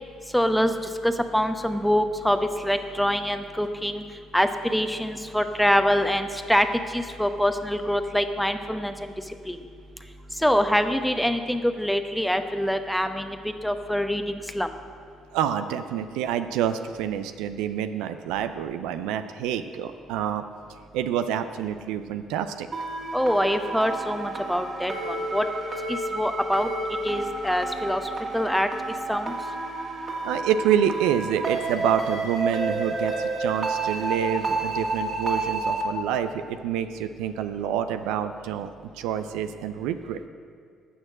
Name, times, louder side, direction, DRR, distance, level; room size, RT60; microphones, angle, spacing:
voice 1, 0.3-0.7 1.0-4.0 4.3-9.1 9.5-9.6 10.4-13.4 13.6-14.2 14.5-14.7 23.1-25.5 25.9-26.7 27.0-28.0 28.3-28.7 29.1-29.3, equal, 5° left, 7 dB, 0.9 m, -24 dB
voice 2, 15.3-20.4 20.9-22.7 30.2-38.7 38.9-40.3, right 9 dB, 75° right, 9 dB, 0.4 m, -27 dB
sound 1, 22.7-35.8, right 2 dB, 45° right, 2.3 m, -30 dB
12.5 x 6.4 x 7.6 m, 2.2 s
hypercardioid pair, 50°, 0 cm